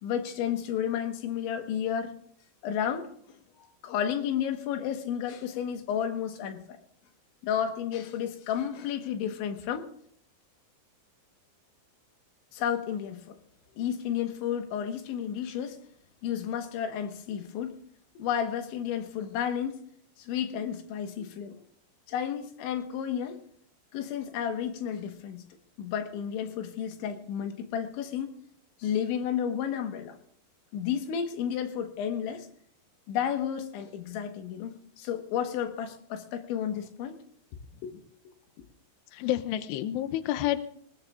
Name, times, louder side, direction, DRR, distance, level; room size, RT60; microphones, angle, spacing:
voice 1, 0.0-2.1 2.6-3.4 3.8-6.6 7.4-9.9 12.5-13.4 13.8-15.8 16.2-17.8 18.2-19.8 20.2-21.5 22.1-23.4 23.9-25.4 25.8-28.3 28.8-30.2 30.7-32.5 33.1-37.2 37.8-38.0, left 9 dB, 70° left, 6 dB, 3.5 m, -32 dB
voice 2, 39.1-40.6, left 13 dB, 90° left, 10 dB, 2.4 m, -29 dB
23.0 x 19.5 x 2.4 m, 0.64 s
omnidirectional pair, 5.9 m